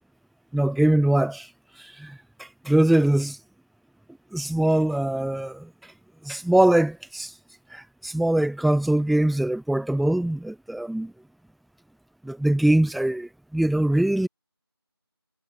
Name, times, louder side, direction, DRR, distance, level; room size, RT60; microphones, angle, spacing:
voice 1, 0.5-1.5 2.0-2.2 2.6-3.4 4.3-5.7 6.2-7.3 7.7-11.1 12.2-14.3, right 1 dB, ahead, 0.4 m, -22 dB
figure-of-eight pair, 175°, 13 cm